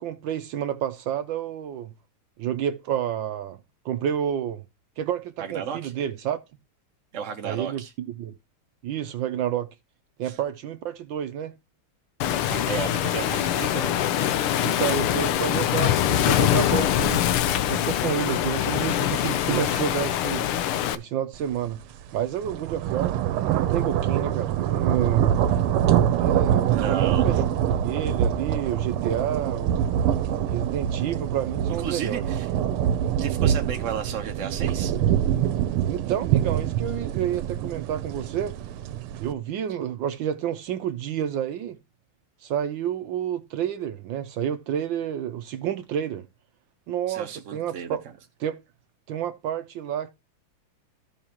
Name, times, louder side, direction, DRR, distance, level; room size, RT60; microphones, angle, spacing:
voice 1, 0.0-1.9 2.4-3.6 3.8-4.6 5.0-6.4 7.4-8.3 8.8-9.7 10.2-11.5 14.6-17.2 17.7-20.4 20.9-21.8 22.1-25.3 26.2-27.4 27.8-30.0 30.5-32.2 35.9-38.6 39.2-41.8 42.4-46.2 46.9-48.0 48.4-48.6 49.1-50.1, right 9 dB, 70° right, 1.3 m, -29 dB
voice 2, 5.4-5.9 7.1-7.9 10.2-10.4 12.5-14.0 26.7-27.4 31.8-32.5 33.2-35.0 47.1-48.0, right 7 dB, 55° right, 0.8 m, -33 dB
Waves surf, 12.2-21.0, left 11 dB, 85° left, 1.6 m, -24 dB
sound 1, 21.5-21.7 22.1-39.3, right 10 dB, 90° right, 1.6 m, -25 dB
14.0 x 5.5 x 2.9 m
omnidirectional pair, 2.4 m